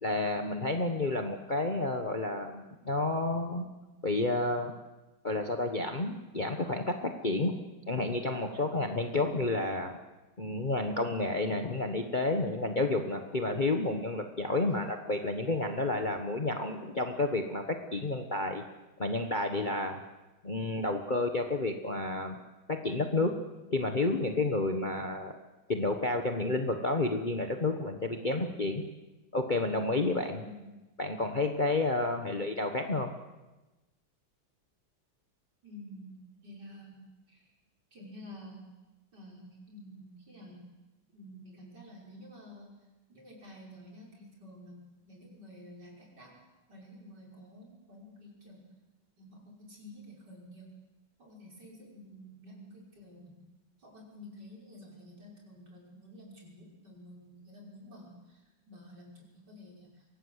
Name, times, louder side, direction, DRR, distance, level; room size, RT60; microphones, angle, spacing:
voice 1, 0.0-3.7 4.0-4.7 5.2-7.5 7.9-9.9 10.4-18.6 19.0-20.0 20.4-22.4 22.7-23.4 23.7-25.4 25.7-28.8 29.3-30.4 31.0-33.1, left 2 dB, 30° left, 5 dB, 1.2 m, -30 dB
voice 2, 14.5-15.0 30.4-30.7 35.6-37.5 37.9-38.7 39.1-40.7 41.1-42.7 43.1-46.3 46.7-48.7 49.2-50.7 51.2-53.4 53.8-60.2, left 1 dB, 55° right, -2 dB, 6.4 m, -50 dB
24.0 x 18.0 x 8.1 m, 1.1 s
omnidirectional pair, 2.2 m